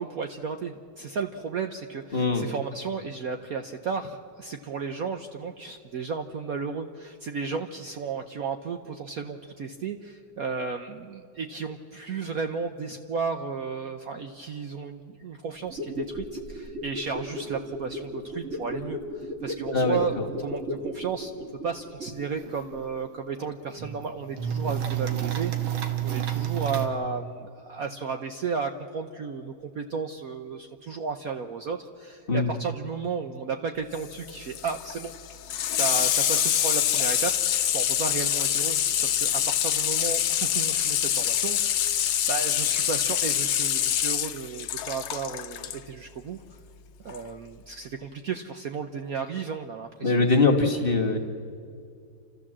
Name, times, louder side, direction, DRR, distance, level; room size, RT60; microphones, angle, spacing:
voice 1, 0.0-21.3 21.6-35.1 35.8-46.4 47.0-50.3, right 5 dB, 60° right, 6 dB, 1.0 m, -34 dB
voice 2, 2.1-2.5 19.7-20.0 32.3-32.5 50.0-51.2, left 3 dB, 30° left, 1 dB, 1.4 m, -22 dB
sound 1, 15.6-22.5 22.8-22.9, left 1 dB, 35° right, 2.3 m, -35 dB
sound 2, 22.5-22.6 22.8-22.9 23.4-24.0 24.4-26.9, right 10 dB, 80° right, 2.1 m, -29 dB
Water tap faucet / Sink (filling or washing), 33.9-45.8 47.1-47.2, left 10 dB, 70° left, 1.4 m, -25 dB
30.0 x 13.5 x 7.4 m, 2.3 s
omnidirectional pair, 2.2 m